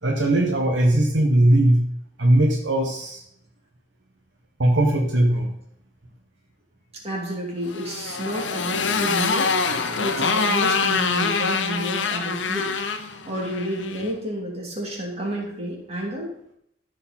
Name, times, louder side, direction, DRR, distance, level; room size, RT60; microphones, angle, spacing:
voice 1, 0.0-1.9 2.2-3.2 4.6-5.5, right 1 dB, 75° right, 0 dB, 1.4 m, -19 dB
voice 2, 7.0-9.5 10.0-12.7 12.9-16.3, equal, 35° right, -2 dB, 2.8 m, -30 dB
Motorcycle, 7.6-14.1, left 4 dB, 80° left, 0.9 m, -25 dB
14.0 x 5.2 x 4.3 m, 0.74 s
head